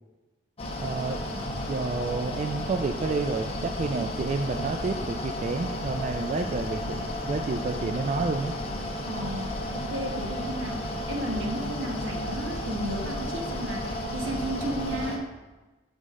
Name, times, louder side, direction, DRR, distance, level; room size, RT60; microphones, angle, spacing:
Mechanical fan, 0.6-15.2, left 1 dB, 30° left, 0.9 m, -33 dB
voice 1, 0.8-8.5, right 3 dB, 35° right, 5 dB, 0.3 m, -30 dB
voice 2, 9.0-15.3, right 1 dB, 75° right, 1 dB, 1.3 m, -33 dB
8.2 x 5.3 x 3.7 m, 1.2 s
head